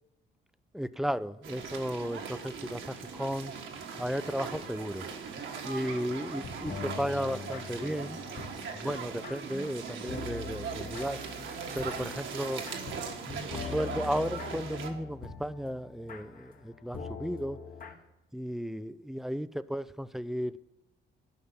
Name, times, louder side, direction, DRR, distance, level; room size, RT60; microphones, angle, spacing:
voice 1, 0.7-3.5 4.0-5.1 5.6-8.2 8.7-11.2 11.7-12.6 13.2-17.6 18.3-20.6, equal, ahead, 0.4 m, -34 dB
sound 1, 1.4-14.9, right 5 dB, 75° right, 1.7 m, -40 dB
sound 2, 6.3-17.9, left 5 dB, 45° left, 1.6 m, -43 dB
sound 3, 10.9-13.6, right 5 dB, 50° right, 1.3 m, -51 dB
12.0 x 5.6 x 7.1 m
cardioid pair, 90°, 20 cm